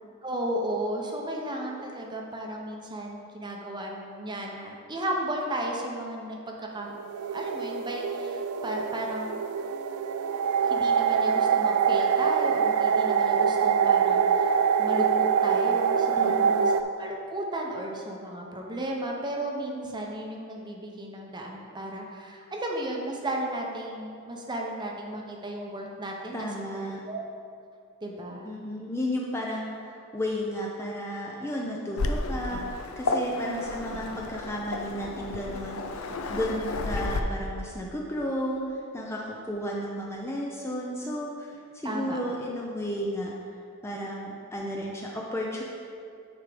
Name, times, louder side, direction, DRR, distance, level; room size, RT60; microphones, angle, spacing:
voice 1, 0.2-7.0 7.3-9.4 10.6-16.3 16.6-27.2 28.0-28.5 33.5-33.7 41.8-42.2, right 1 dB, 20° right, 0 dB, 0.7 m, -34 dB
sound 1, 6.8-16.8, right 6 dB, 75° right, 0.3 m, -24 dB
voice 2, 16.2-16.7 26.3-27.0 28.4-29.8 30.1-38.6 38.9-43.3 43.8-45.6, equal, 10° left, -2 dB, 0.5 m, -33 dB
Waves surf, 32.0-37.2, left 3 dB, 65° left, 0.5 m, -32 dB
9.6 x 3.6 x 5.1 m, 2.5 s
head